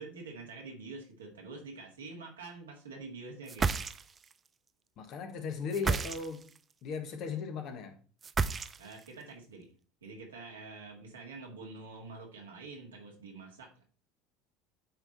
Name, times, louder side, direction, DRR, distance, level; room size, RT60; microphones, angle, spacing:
voice 1, 0.0-3.8 8.8-9.7 10.0-13.9, right 3 dB, 85° right, 1.9 m, -46 dB
sound 1, 3.5-4.3 5.7-6.6 8.2-9.1, right 5 dB, 30° right, 0.5 m, -31 dB
voice 2, 5.0-6.5 6.8-8.0, left 5 dB, 55° left, 1.4 m, -37 dB
8.7 x 3.7 x 4.1 m
hypercardioid pair, 75°, 0 cm